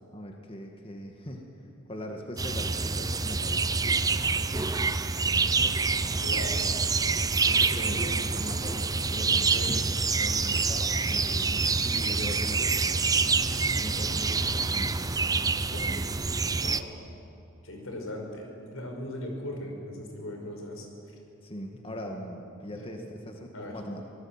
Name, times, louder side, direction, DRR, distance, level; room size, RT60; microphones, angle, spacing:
voice 1, 0.1-1.4 1.9-3.6 5.5-6.1 7.4-9.8 10.1-12.8 13.7-15.1 15.7-16.1 21.4-24.0, left 1 dB, 25° left, 2 dB, 1.9 m, -40 dB
sound 1, 2.4-16.8, right 4 dB, 15° right, 0.6 m, -26 dB
voice 2, 6.2-6.6 13.4-13.7 15.7-16.0 16.5-16.9 17.6-21.2 22.9-23.0 23.5-23.8, left 1 dB, 80° left, 2 dB, 5.4 m, -39 dB
25.5 x 19.0 x 8.9 m, 2.7 s
head